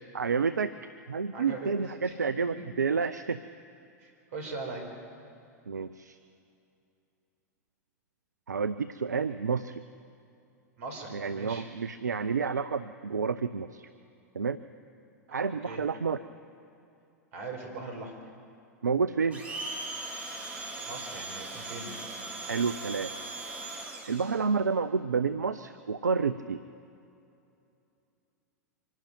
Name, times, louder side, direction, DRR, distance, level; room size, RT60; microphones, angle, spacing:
voice 1, 0.1-0.7 1.1-3.4 5.7-6.2 8.5-9.8 11.1-13.9 14.3-14.6 15.3-16.2 18.8-19.4 22.4-23.1 24.1-26.6, right 5 dB, 80° right, 12 dB, 0.6 m, -29 dB
voice 2, 1.3-1.7 2.0-2.1 4.0-4.9 10.8-11.7 15.3-15.8 17.3-18.1 20.9-22.0, right 3 dB, 60° right, 3 dB, 5.0 m, -40 dB
Domestic sounds home sounds, 19.3-24.4, right 2 dB, 15° right, 3.7 m, -39 dB
25.0 x 12.0 x 9.2 m, 2.7 s
figure-of-eight pair, 95°, 9 cm